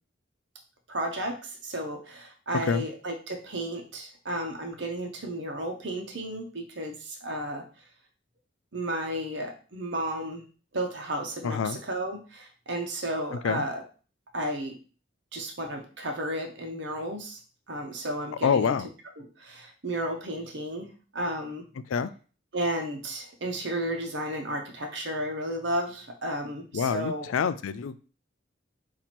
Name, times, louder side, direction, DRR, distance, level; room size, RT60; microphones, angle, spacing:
voice 1, 0.9-7.6 8.7-10.4 10.7-13.8 14.3-14.8 15.3-17.4 17.7-18.7 19.2-20.9 21.1-21.6 22.5-27.3, right 1 dB, 60° right, 3 dB, 0.9 m, -33 dB
voice 2, 11.4-11.8 13.4-13.6 18.4-18.9 21.9-22.1 26.7-28.0, left 6 dB, 80° left, 13 dB, 0.4 m, -26 dB
4.4 x 2.8 x 4.2 m, 0.38 s
head